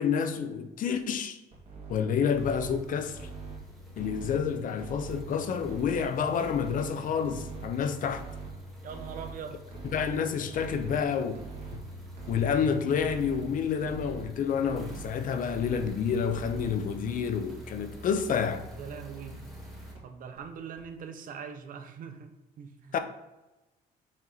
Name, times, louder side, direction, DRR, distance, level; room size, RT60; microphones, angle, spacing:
voice 1, 0.0-1.4 1.9-3.3 4.0-8.2 9.9-11.4 11.7-11.8 12.3-18.6 22.9-23.0, left 7 dB, 55° left, 0.7 m, -29 dB
sound 1, 1.5-1.9 2.3-2.8 3.1-3.6 4.0-4.4 4.8-5.2 5.6-6.0 6.4-6.9 7.3-7.7 8.1-8.5 8.9-9.3 9.7-10.1 10.5-11.0 11.4-11.8 12.2-12.6 13.0-13.4 13.8-14.2 14.6-15.1 15.5-15.9 16.3-16.7 17.1-17.2 17.5-17.6 17.9-18.0 18.3-18.4 18.7-18.8 19.1-19.2 19.5-19.6 20.0-20.1 20.4-20.5 20.8-20.9, right 5 dB, 35° right, 2.2 m, -43 dB
sound 2, 2.3-19.9, left 1 dB, ahead, 1.9 m, -46 dB
voice 2, 8.8-9.7 18.8-19.5 20.0-23.0, right 7 dB, 55° right, 0.9 m, -42 dB
6.1 x 4.4 x 4.0 m
cardioid pair, 110°, 17 cm